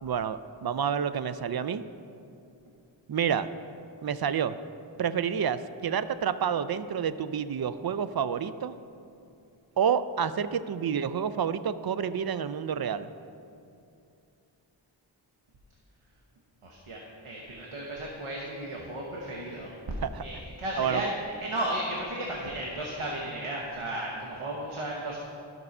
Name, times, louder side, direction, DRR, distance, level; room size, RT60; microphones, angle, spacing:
voice 1, 0.0-1.9 3.1-3.5 4.0-4.6 5.0-8.7 9.8-13.1 20.0-20.2 20.7-21.1, right 7 dB, 50° right, 13 dB, 0.4 m, -29 dB
voice 2, 16.6-19.7 20.2-21.1 21.4-25.2, right 1 dB, 90° right, -2 dB, 1.1 m, -34 dB
12.0 x 5.4 x 5.4 m, 2.6 s
wide cardioid pair, 45°, 49 cm